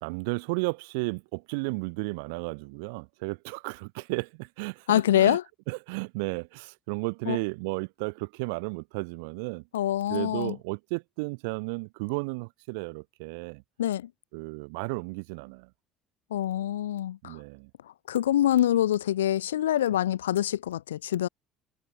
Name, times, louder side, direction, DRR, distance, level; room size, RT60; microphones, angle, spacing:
voice 1, 0.0-5.4 5.7-9.6 10.1-13.6 14.3-15.7 17.2-17.7, right 30 dB, 70° right, 1.2 m, -33 dB
voice 2, 4.9-5.4 7.3-7.4 9.7-10.6 13.8-14.1 16.3-17.4 18.1-21.3, left 12 dB, 85° left, 0.6 m, -25 dB
hypercardioid pair, 60°, 0 cm